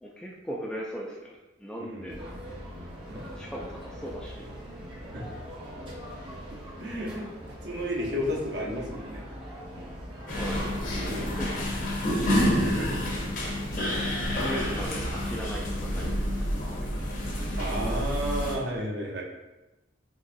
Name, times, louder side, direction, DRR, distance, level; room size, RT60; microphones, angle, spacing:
voice 1, 0.0-2.2 3.0-4.5 10.4-10.7 11.0-11.9 13.8-14.0 14.3-16.9 17.7-18.0, equal, 5° left, -3 dB, 0.3 m, -39 dB
voice 2, 1.8-2.2 3.1-3.2 5.1-5.2 6.8-7.3 7.6-9.2 10.9-11.3 12.5-13.0 13.8-14.2 17.6-19.2, equal, 60° right, -2 dB, 0.8 m, -33 dB
sound 1, 2.1-11.4, equal, 25° right, 0.8 m, -42 dB
sound 2, 10.3-18.6, equal, 45° left, 0.6 m, -28 dB
3.8 x 2.9 x 2.6 m, 1.0 s
head